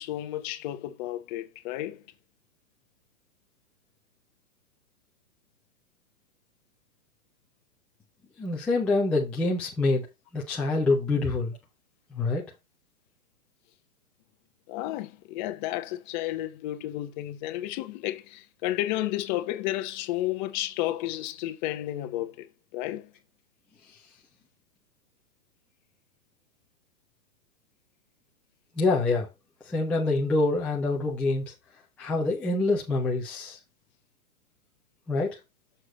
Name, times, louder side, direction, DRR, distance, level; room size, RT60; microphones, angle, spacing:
voice 1, 0.0-2.0 14.7-22.5 22.7-23.1, left 14 dB, 35° left, 0.8 m, -32 dB
voice 2, 8.4-10.1 10.3-11.5 12.1-12.4 28.8-29.3 29.7-31.5 32.0-33.6 35.1-35.4, left 3 dB, 5° left, 0.4 m, -26 dB
6.6 x 6.0 x 4.1 m
hypercardioid pair, 140°, 43 cm